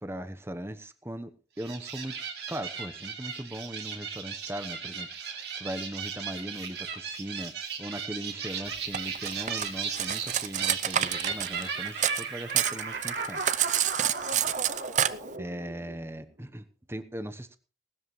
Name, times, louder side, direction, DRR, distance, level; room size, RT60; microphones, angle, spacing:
voice 1, 0.0-2.2 2.5-7.5 7.8-13.4 13.7-13.9 15.4-17.6, right 1 dB, 15° right, 10 dB, 1.0 m, -39 dB
sound 1, 1.6-16.2, right 5 dB, 65° right, 2.8 m, -36 dB
Cutlery silverware, 8.9-12.2 12.5-15.1, right 10 dB, 45° right, 0.6 m, -28 dB
18.5 x 12.5 x 3.2 m, 0.36 s
head